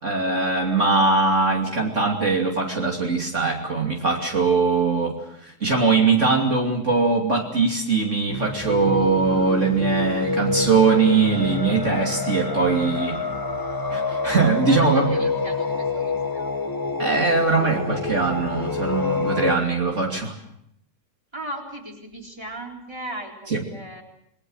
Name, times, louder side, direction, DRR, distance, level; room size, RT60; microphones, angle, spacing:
voice 1, 0.0-5.1 5.4-13.2 13.9-15.1 17.0-20.3 23.5-23.6, right 4 dB, 50° right, 0 dB, 3.2 m, -21 dB
sound 1, 8.3-19.6, left 3 dB, 15° left, 1.3 m, -27 dB
voice 2, 14.6-16.5 21.3-24.0, right 1 dB, 15° right, 1 dB, 4.1 m, -37 dB
29.0 x 20.5 x 6.4 m, 0.74 s
omnidirectional pair, 1.6 m